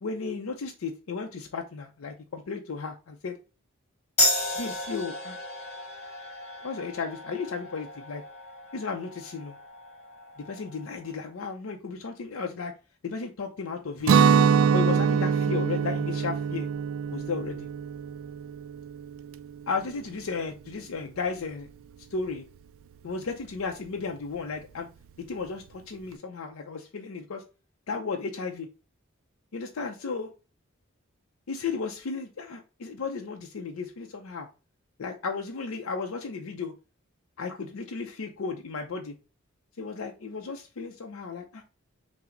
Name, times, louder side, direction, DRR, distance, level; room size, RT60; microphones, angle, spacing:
voice 1, 0.0-3.4 4.6-5.4 6.6-8.2 8.7-9.6 10.5-12.7 13.0-14.1 14.7-16.7 17.1-17.7 19.7-21.7 22.1-22.4 23.0-24.9 25.2-27.4 27.9-28.7 29.5-30.3 31.5-34.5 35.0-36.7 37.4-39.1 39.8-41.6, left 4 dB, 75° left, 2 dB, 0.5 m, -34 dB
sound 1, 4.2-11.3, left 1 dB, 30° left, 1.5 m, -33 dB
Guitar, 14.0-19.9, right 6 dB, 65° right, 0.3 m, -24 dB
5.7 x 2.0 x 3.7 m, 0.32 s
head